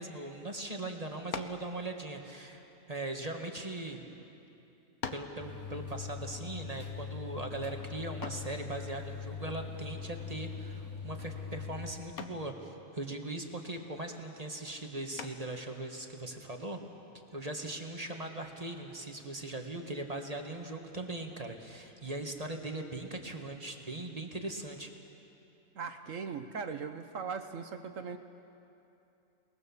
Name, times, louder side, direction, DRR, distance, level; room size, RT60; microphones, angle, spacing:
voice 1, 0.0-4.0 5.1-16.8 17.3-24.9, right 2 dB, 25° right, 3 dB, 1.7 m, -40 dB
sound 1, 1.3-1.7 2.6-3.8 4.5-4.6 5.0-5.4 8.2-8.6 10.5-10.8 11.2-11.6 12.2-12.5 15.2-15.6, left 7 dB, 80° left, 1.6 m, -42 dB
sound 2, 5.4-11.9, left 6 dB, 10° left, 2.9 m, -42 dB
voice 2, 25.7-28.2, right 5 dB, 65° right, 8 dB, 1.2 m, -39 dB
29.5 x 20.0 x 7.2 m, 2.9 s
omnidirectional pair, 1.5 m